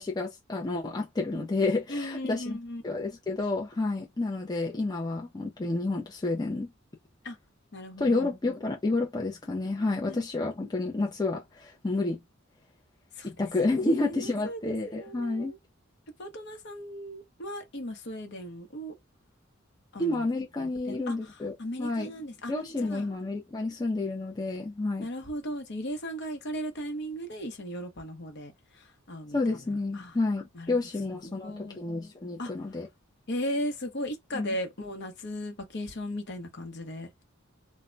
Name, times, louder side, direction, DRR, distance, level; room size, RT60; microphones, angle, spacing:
voice 1, 0.0-2.6 2.8-6.7 8.0-12.2 13.2-15.5 20.0-22.1 22.5-25.1 29.3-32.9 34.3-34.5, left 2 dB, 20° left, 0.5 m, -30 dB
voice 2, 1.9-2.8 7.2-7.4 7.7-8.3 10.1-10.2 13.1-13.3 13.8-15.6 16.2-18.9 19.9-20.2 20.8-21.2 21.6-22.5 22.8-23.1 25.0-29.6 29.9-30.1 30.5-31.8 32.4-32.5 33.3-37.1, equal, 60° left, 0.8 m, -37 dB
2.1 x 2.1 x 3.7 m
head